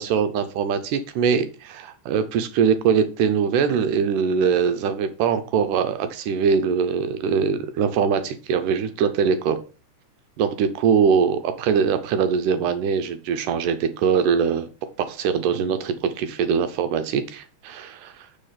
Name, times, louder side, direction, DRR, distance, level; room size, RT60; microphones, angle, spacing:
voice 1, 0.0-9.6 10.4-14.7 15.0-18.3, right 6 dB, 80° right, 9 dB, 2.3 m, -22 dB
8.9 x 4.2 x 5.6 m, 0.34 s
omnidirectional pair, 3.7 m